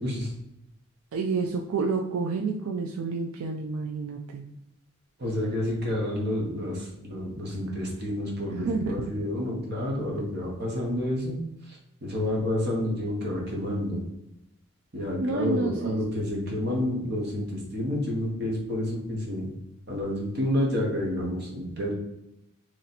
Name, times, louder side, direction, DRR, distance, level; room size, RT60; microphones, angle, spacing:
voice 1, 0.0-0.3 5.2-11.4 11.7-14.0 14.9-19.5 19.9-21.9, left 1 dB, 45° right, -2 dB, 1.0 m, -29 dB
voice 2, 1.1-4.4 7.7-7.8 8.5-9.0 15.2-16.0, right 4 dB, 75° right, 2 dB, 0.3 m, -29 dB
3.1 x 2.8 x 4.0 m, 0.88 s
head